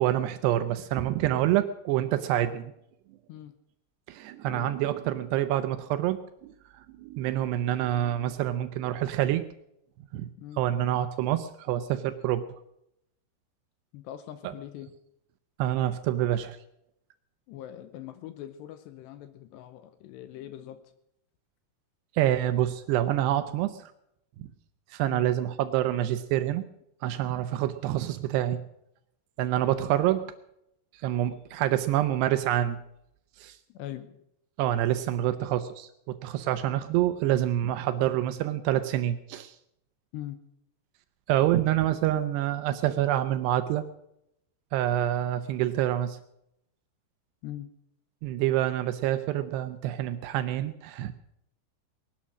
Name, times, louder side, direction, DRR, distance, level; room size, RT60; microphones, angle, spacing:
voice 1, 0.0-2.7 4.1-6.5 7.0-9.4 10.1-10.3 10.6-12.4 15.6-16.6 22.2-23.8 24.9-26.6 27.0-28.6 29.4-30.3 31.0-32.8 33.4-33.6 34.6-35.9 36.2-39.6 41.3-43.8 44.7-46.2 48.2-51.1, right 12 dB, 85° right, 10 dB, 2.4 m, -27 dB
voice 2, 13.9-14.9 17.5-20.8 25.1-25.3 29.7-29.9 33.7-34.2 40.1-40.4 47.4-47.7, left 12 dB, 80° left, 11 dB, 2.6 m, -42 dB
20.0 x 11.5 x 6.3 m, 0.78 s
omnidirectional pair, 5.6 m